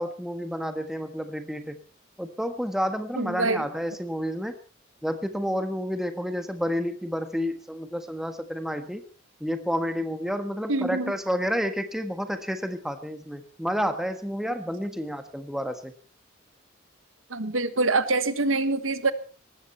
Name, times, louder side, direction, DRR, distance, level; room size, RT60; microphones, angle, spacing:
voice 1, 0.0-1.8 2.2-4.5 5.0-9.0 9.4-15.9, equal, ahead, 7 dB, 1.4 m, -30 dB
voice 2, 3.2-3.7 10.7-11.1 17.3-19.1, right 3 dB, 80° right, 12 dB, 1.4 m, -25 dB
19.0 x 15.0 x 4.3 m, 0.37 s
head